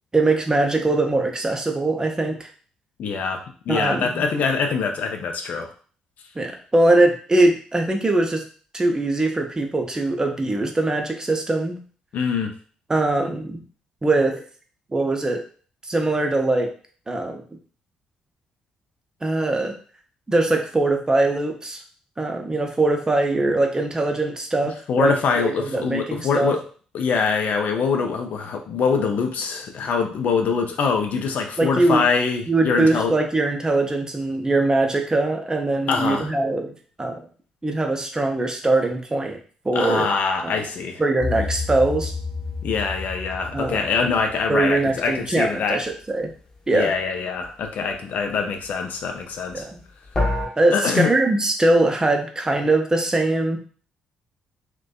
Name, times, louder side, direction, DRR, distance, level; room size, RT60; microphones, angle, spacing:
voice 1, 0.1-2.5 3.7-4.2 6.4-8.4 8.7-11.8 12.9-13.6 14.0-14.4 14.9-15.4 15.8-16.7 17.1-17.4 19.2-19.7 20.3-21.8 22.2-26.5 31.6-32.0 32.5-36.7 37.0-37.2 37.6-39.4 39.6-40.1 40.4-40.6 41.0-42.1 43.5-43.9 44.5-46.3 46.7-46.9 49.5-49.8 50.6-53.6, right 2 dB, 20° right, 3 dB, 0.6 m, -21 dB
voice 2, 3.0-3.4 3.7-5.7 12.1-12.5 24.9-26.6 26.9-33.1 35.9-36.3 39.7-41.0 41.4-41.5 42.6-45.8 46.7-49.7 50.7-51.1, left 5 dB, 60° left, 4 dB, 0.4 m, -24 dB
sound 1, 41.2-45.4 50.1-50.5, left 3 dB, 25° left, 0.7 m, -29 dB
2.5 x 2.2 x 2.3 m, 0.42 s
hypercardioid pair, 45°, 3 cm